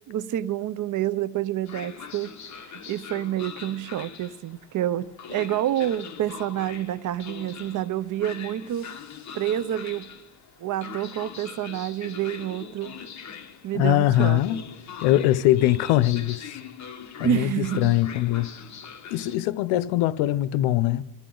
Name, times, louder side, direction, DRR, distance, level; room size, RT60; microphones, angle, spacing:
voice 1, 0.1-8.9 9.3-10.1 10.6-13.0 13.6-14.4 17.2-18.0, right 12 dB, 40° right, 0.6 m, -28 dB
Train, 1.6-19.4, left 7 dB, 35° left, 1.5 m, -42 dB
voice 2, 13.7-14.6 15.0-16.4 17.2-18.5 19.1-21.0, left 14 dB, 75° left, 0.8 m, -22 dB
27.5 x 13.5 x 3.9 m
cardioid pair, 125°, 49 cm